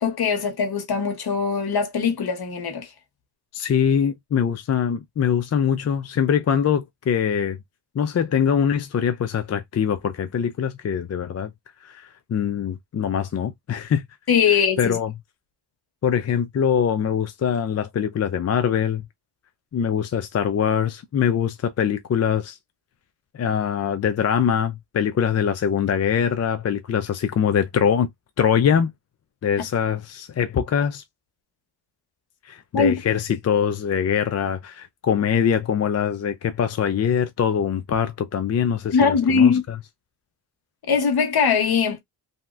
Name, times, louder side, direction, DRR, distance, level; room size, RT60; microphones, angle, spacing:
voice 1, 0.0-2.9 14.3-15.0 32.7-32.9 38.9-39.6 40.9-42.0, left 6 dB, 60° left, 1.2 m, -20 dB
voice 2, 3.5-7.6 7.9-11.5 11.8-14.0 14.8-15.1 16.0-19.0 19.7-22.6 23.3-28.1 28.4-28.9 29.4-31.0 32.4-39.5, left 8 dB, 40° left, 0.5 m, -23 dB
3.0 x 2.8 x 2.3 m
cardioid pair, 85°, 42 cm